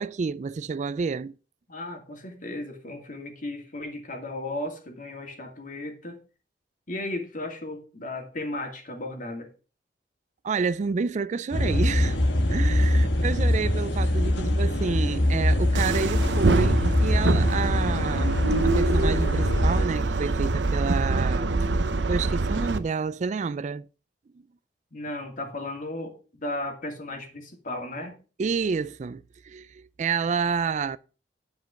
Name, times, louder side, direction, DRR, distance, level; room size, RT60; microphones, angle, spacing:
voice 1, 0.0-1.4 10.4-12.2 12.5-21.6 22.1-23.9 28.4-31.0, right 5 dB, 40° right, 0.3 m, -29 dB
voice 2, 1.7-6.2 6.9-9.5 24.9-28.2, left 2 dB, 50° left, 2.4 m, -35 dB
sound 1, 11.5-19.8, left 1 dB, 80° left, 1.4 m, -23 dB
sound 2, 15.7-22.8, right 3 dB, 80° right, 0.8 m, -25 dB
10.5 x 5.2 x 5.8 m
head